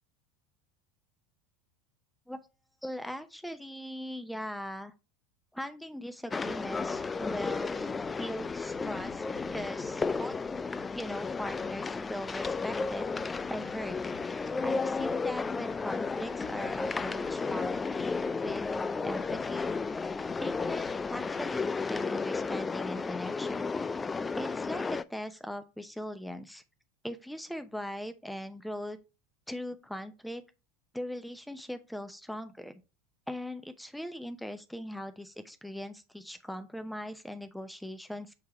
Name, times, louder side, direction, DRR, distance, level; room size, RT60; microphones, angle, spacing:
voice 1, 2.8-4.9 5.5-7.9 8.2-9.3 9.5-10.4 10.9-14.0 14.6-18.7 19.0-19.7 20.4-23.7 24.4-26.6 27.0-29.0 29.5-30.4 30.9-32.8 33.3-38.4, left 1 dB, ahead, 9 dB, 0.8 m, -40 dB
sound 1, 6.3-25.0, left 4 dB, 20° left, 0.3 m, -33 dB
sound 2, 6.4-21.4, left 6 dB, 60° left, 3.4 m, -55 dB
6.8 x 3.4 x 4.3 m, 0.29 s
figure-of-eight pair, 75°, 0 cm